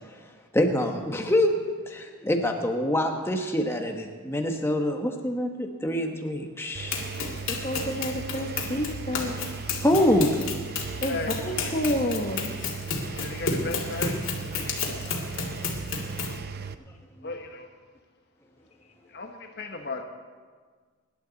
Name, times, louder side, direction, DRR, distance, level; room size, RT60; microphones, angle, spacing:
voice 1, 0.5-1.6 1.9-7.0 9.8-10.3 13.2-13.3 14.6-14.7 17.2-17.3, left 1 dB, 10° left, 3 dB, 1.3 m, -25 dB
Engine, 6.7-16.7, right 5 dB, 50° right, 0.6 m, -37 dB
Run, 6.9-16.4, left 4 dB, 75° left, 2.4 m, -32 dB
voice 2, 7.5-9.4 11.0-11.2 11.4-12.5, left 1 dB, 35° left, 2 dB, 1.3 m, -29 dB
voice 3, 13.1-14.8 17.2-17.7 19.1-20.0, left 3 dB, 50° left, 4 dB, 1.1 m, -36 dB
24.5 x 11.5 x 4.1 m, 1.5 s
head